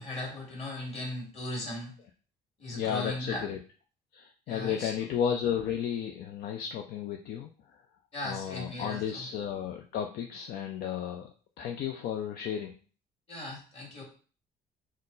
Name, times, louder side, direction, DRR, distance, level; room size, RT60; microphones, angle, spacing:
voice 1, 0.0-1.9 2.6-3.4 4.5-4.9 8.1-9.2 13.3-14.0, left 1 dB, 35° left, -2 dB, 2.1 m, -37 dB
voice 2, 2.7-3.6 4.1-7.8 8.2-12.7, left 8 dB, 65° left, 3 dB, 0.5 m, -33 dB
4.3 x 2.0 x 3.8 m, 0.39 s
cardioid pair, 110°, 17 cm